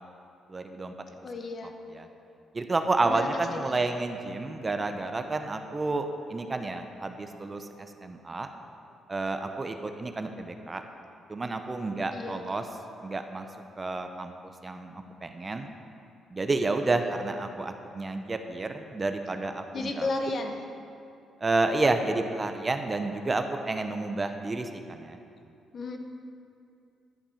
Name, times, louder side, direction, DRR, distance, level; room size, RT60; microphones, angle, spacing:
voice 1, 0.5-0.9 1.9-2.1 2.5-8.5 9.1-10.8 11.3-12.7 13.0-13.5 13.8-14.3 14.6-15.7 16.3-20.1 21.4-25.2, right 3 dB, 25° right, 6 dB, 0.7 m, -30 dB
voice 2, 1.2-1.7 3.0-3.3 3.6-3.8 12.1-12.6 19.7-20.6 25.7-26.0, left 2 dB, 50° left, 4 dB, 1.0 m, -33 dB
11.5 x 5.3 x 7.0 m, 2.5 s
cardioid pair, 90°, 0 cm